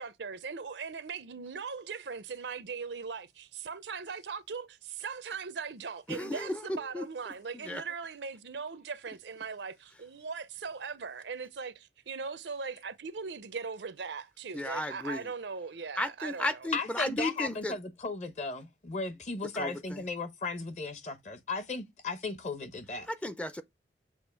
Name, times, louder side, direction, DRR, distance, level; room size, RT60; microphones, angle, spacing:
voice 1, 0.0-16.7, right 5 dB, 80° right, 0.6 m, -39 dB
voice 2, 6.1-7.1 7.7-7.8 14.5-15.3 16.0-17.7 19.5-20.0 23.1-23.6, left 1 dB, 5° left, 0.4 m, -34 dB
voice 3, 16.7-23.1, left 3 dB, 40° left, 0.8 m, -36 dB
7.1 x 2.5 x 5.6 m
head